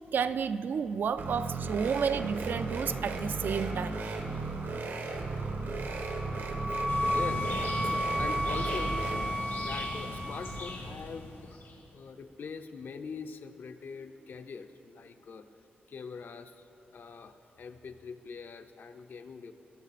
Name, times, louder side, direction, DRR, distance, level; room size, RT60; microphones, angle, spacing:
voice 1, 0.1-4.0, right 6 dB, 60° right, 12 dB, 0.3 m, -31 dB
sound 1, 1.2-9.2, right 3 dB, 80° right, 1.1 m, -35 dB
Wind instrument woodwind instrument, 6.0-10.8, equal, 5° left, 0.5 m, -33 dB
voice 2, 6.6-7.5 7.8-11.6 11.9-15.5 15.9-16.6 16.9-19.5, left 5 dB, 60° left, 8 dB, 0.6 m, -43 dB
sound 2, 6.9-11.8, left 3 dB, 85° left, 1.9 m, -39 dB
20.0 x 7.0 x 4.1 m, 2.9 s
wide cardioid pair, 145°, 4 cm